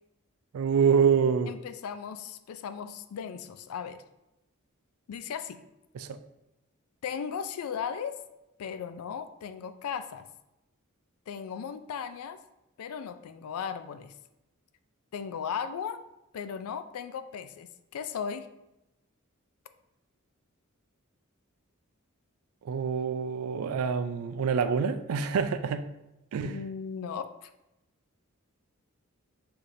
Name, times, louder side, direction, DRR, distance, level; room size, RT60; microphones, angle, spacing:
voice 1, 0.5-1.5 5.9-6.2 22.6-25.8 26.3-26.6, right 6 dB, 85° right, 9 dB, 0.4 m, -26 dB
voice 2, 1.5-4.0 5.1-5.6 7.0-8.2 8.6-10.3 11.3-12.4 12.8-14.1 15.1-16.0 16.3-18.5 26.4-27.5, left 7 dB, 85° left, 10 dB, 0.4 m, -36 dB
6.5 x 2.8 x 2.5 m, 0.93 s
head